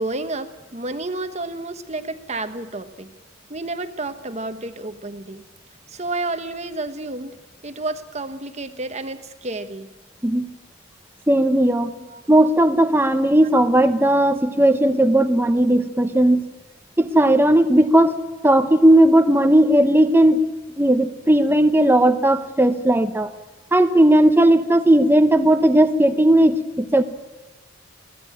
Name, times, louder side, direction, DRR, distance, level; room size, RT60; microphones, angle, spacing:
voice 1, 0.0-3.1 3.5-5.4 5.9-7.4 7.6-9.9 12.1-12.2, right 2 dB, 30° right, 9 dB, 1.2 m, -30 dB
voice 2, 11.3-11.9 12.3-16.5 17.0-18.2 18.4-20.4 20.8-23.3 23.7-27.0, right 1 dB, 10° right, 8 dB, 0.9 m, -16 dB
22.5 x 16.0 x 8.9 m, 1.1 s
head